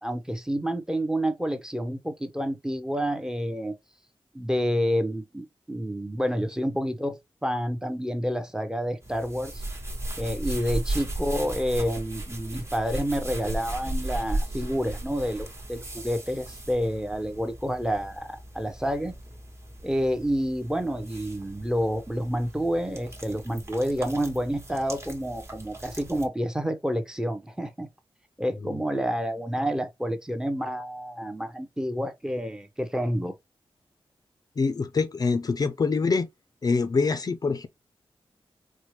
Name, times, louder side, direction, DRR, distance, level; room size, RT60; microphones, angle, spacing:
voice 1, 0.0-3.8 4.3-9.6 10.2-19.1 19.8-27.9 28.4-33.3, equal, 5° right, 0.6 m, -29 dB
sound 1, 9.0-26.3, right 1 dB, 30° right, 1.1 m, -36 dB
voice 2, 34.6-36.3 36.6-37.7, left 4 dB, 40° left, 0.4 m, -25 dB
4.3 x 2.1 x 3.0 m
wide cardioid pair, 110°, 9 cm